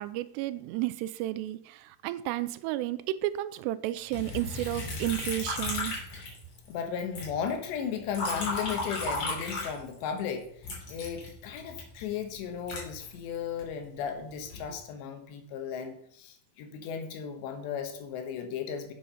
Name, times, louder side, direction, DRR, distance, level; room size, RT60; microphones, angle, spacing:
voice 1, 0.0-6.0, right 15 dB, 85° right, 2.6 m, -32 dB
Liquid, 4.1-6.7 7.0-10.2 10.6-13.7 14.2-14.8, left 2 dB, 50° left, 4.5 m, -35 dB
voice 2, 6.7-18.9, left 7 dB, 85° left, 3.4 m, -35 dB
7.7 x 7.7 x 5.5 m
omnidirectional pair, 4.9 m